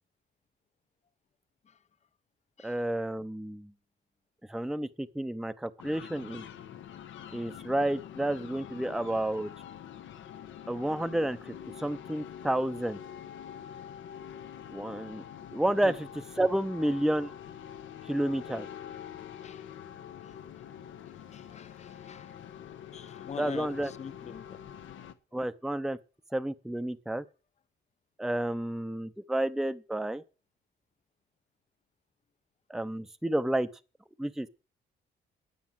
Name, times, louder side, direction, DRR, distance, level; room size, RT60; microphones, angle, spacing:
voice 1, 2.6-3.7 4.5-6.4 7.3-9.5 10.7-13.0 14.7-15.2 15.5-16.1 16.4-17.3 18.0-18.7 23.4-23.9 25.3-26.0 26.3-27.2 28.2-30.2 32.7-33.7 34.2-34.5, right 1 dB, ahead, 0.7 m, -30 dB
sound 1, 5.8-25.1, left 9 dB, 75° left, 1.2 m, -45 dB
voice 2, 21.3-22.3 22.9-24.6, left 6 dB, 35° left, 0.7 m, -44 dB
9.6 x 8.6 x 7.4 m
cardioid pair, 90°, 20 cm